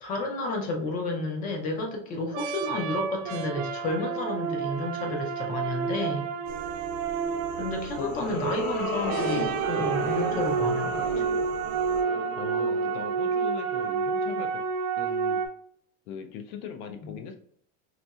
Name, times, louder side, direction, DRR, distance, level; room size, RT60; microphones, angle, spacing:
voice 1, 0.0-6.3 7.5-11.2 17.0-17.1, left 2 dB, 20° left, 2 dB, 0.3 m, -31 dB
sound 1, 1.2-1.7 2.3-8.6 9.1-15.5, right 6 dB, 85° right, 0.7 m, -30 dB
sound 2, 6.5-12.0, right 6 dB, 40° right, 0.5 m, -45 dB
sound 3, 7.6-14.1, equal, 65° left, 1.2 m, -34 dB
voice 2, 8.0-8.6 12.4-14.6 15.0-15.4 16.1-17.4, left 6 dB, 85° left, 5 dB, 0.7 m, -39 dB
4.1 x 2.7 x 2.3 m, 0.63 s
cardioid pair, 165°, 43 cm